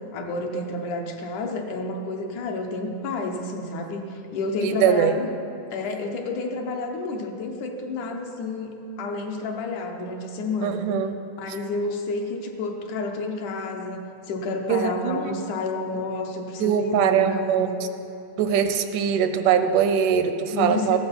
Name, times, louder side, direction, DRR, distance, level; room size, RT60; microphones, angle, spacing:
voice 1, 0.1-5.3 5.7-10.8 11.4-17.8 20.5-21.0, left 3 dB, 70° left, 3 dB, 2.3 m, -30 dB
voice 2, 4.6-5.1 10.6-11.2 14.7-15.4 16.6-17.7 18.4-21.0, right 8 dB, 80° right, 9 dB, 2.1 m, -22 dB
15.0 x 12.0 x 5.3 m, 2.7 s
omnidirectional pair, 3.8 m